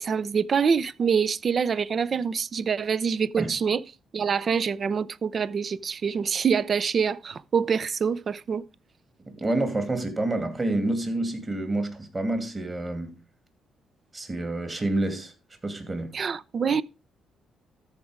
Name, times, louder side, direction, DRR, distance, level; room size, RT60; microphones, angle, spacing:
voice 1, 0.0-3.8 4.1-8.6 16.1-16.8, right 6 dB, 45° right, 0.5 m, -25 dB
voice 2, 9.2-13.2 14.1-15.3 15.6-16.2, right 2 dB, 25° right, 2.6 m, -28 dB
13.5 x 4.8 x 5.0 m
cardioid pair, 90°, 0 cm